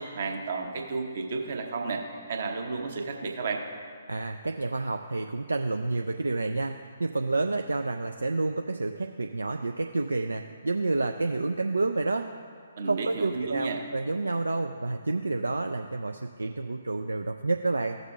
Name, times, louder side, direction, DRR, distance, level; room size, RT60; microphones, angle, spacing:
voice 1, 0.0-2.0 2.3-3.6 12.8-13.8, right 4 dB, 50° right, 2 dB, 1.0 m, -32 dB
voice 2, 4.1-12.4 12.8-18.0, right 3 dB, 75° right, 5 dB, 0.3 m, -29 dB
15.0 x 6.5 x 2.4 m, 2.3 s
figure-of-eight pair, 130°, 0 cm